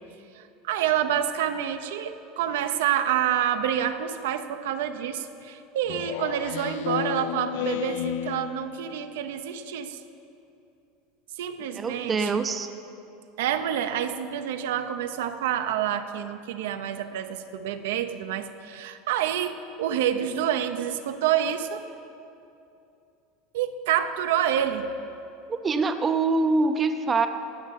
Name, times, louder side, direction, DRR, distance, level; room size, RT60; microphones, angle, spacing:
voice 1, 0.4-10.0 11.4-12.3 13.4-21.8 23.5-24.8, right 10 dB, 85° right, 8 dB, 0.8 m, -28 dB
Speech synthesizer, 5.9-8.9, left 13 dB, 65° left, 0.5 m, -32 dB
voice 2, 11.7-12.7 25.5-27.3, right 3 dB, 15° right, 8 dB, 0.5 m, -24 dB
16.0 x 6.5 x 9.2 m, 2.7 s
supercardioid pair, 165°, 0 cm